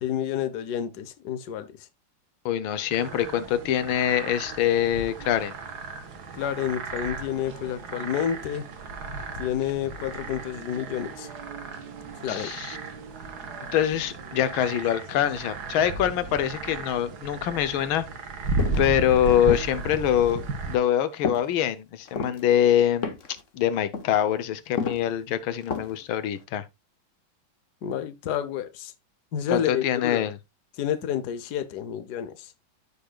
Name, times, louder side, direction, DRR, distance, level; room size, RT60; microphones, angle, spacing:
voice 1, 0.0-1.7 6.3-8.7 9.3-11.3 12.2-12.5 27.8-28.9 29.3-30.3 30.8-32.5, left 9 dB, 60° left, 1.4 m, -29 dB
voice 2, 2.4-5.5 12.3-12.8 13.7-18.0 18.8-23.1 23.5-26.6 29.5-30.4, left 10 dB, 85° left, 1.6 m, -24 dB
sound 1, 2.9-20.8, right 3 dB, 55° right, 1.7 m, -35 dB
sound 2, 18.6-18.9 19.4-19.9 20.3-20.5 21.2-21.5 22.0-22.4 23.0-23.4 23.7-24.1 24.7-25.1 25.6-26.0 26.4-26.5, left 5 dB, 45° left, 1.3 m, -31 dB
14.0 x 5.5 x 2.3 m
omnidirectional pair, 2.2 m